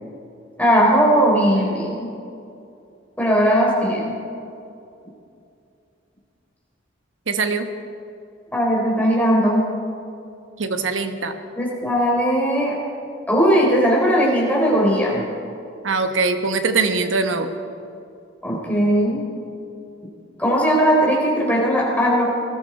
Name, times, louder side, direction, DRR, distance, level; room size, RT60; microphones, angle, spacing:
voice 1, 0.6-1.9 3.2-4.2 8.5-9.6 11.6-12.8 13.3-15.2 18.4-19.2 20.4-22.2, equal, 10° left, -4 dB, 3.6 m, -18 dB
voice 2, 7.3-7.7 10.6-11.3 15.8-17.5, right 4 dB, 90° right, 7 dB, 1.1 m, -22 dB
19.5 x 13.5 x 4.4 m, 2.6 s
head